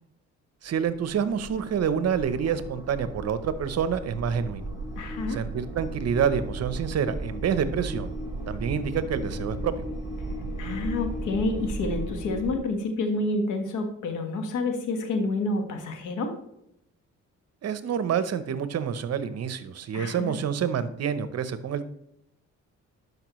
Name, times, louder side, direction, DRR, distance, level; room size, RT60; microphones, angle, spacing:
voice 1, 0.6-4.7 5.3-8.1 8.5-9.7 17.6-21.8, right 7 dB, 55° right, 13 dB, 0.8 m, -27 dB
sound 1, 0.7-12.6, right 1 dB, 15° right, 3.3 m, -35 dB
voice 2, 5.0-5.4 10.6-16.3 19.9-20.3, left 2 dB, 85° left, 5 dB, 1.5 m, -29 dB
12.0 x 5.4 x 3.1 m, 0.79 s
cardioid pair, 90°, 30 cm